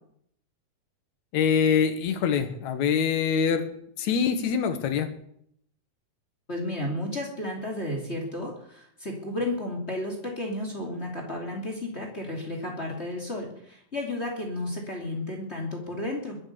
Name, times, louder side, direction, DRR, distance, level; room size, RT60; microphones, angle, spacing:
voice 1, 1.3-3.7 4.0-5.1, left 7 dB, 70° left, 7 dB, 2.7 m, -24 dB
voice 2, 6.5-16.4, left 1 dB, 20° left, 0 dB, 2.9 m, -33 dB
21.5 x 8.3 x 6.9 m, 0.69 s
omnidirectional pair, 3.5 m